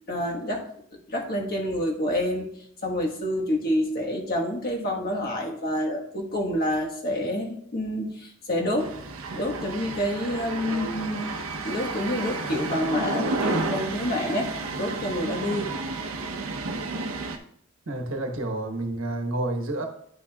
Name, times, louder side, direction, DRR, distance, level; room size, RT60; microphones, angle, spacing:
voice 1, 0.1-0.7 1.1-2.5 2.8-8.9 9.3-11.3 11.6-15.7, left 1 dB, 45° left, 0 dB, 1.4 m, -28 dB
sound 1, 8.8-17.4, right 3 dB, 90° right, 0.9 m, -31 dB
voice 2, 17.9-19.9, right 2 dB, 70° right, 4 dB, 1.2 m, -29 dB
11.0 x 6.1 x 2.3 m, 0.69 s
head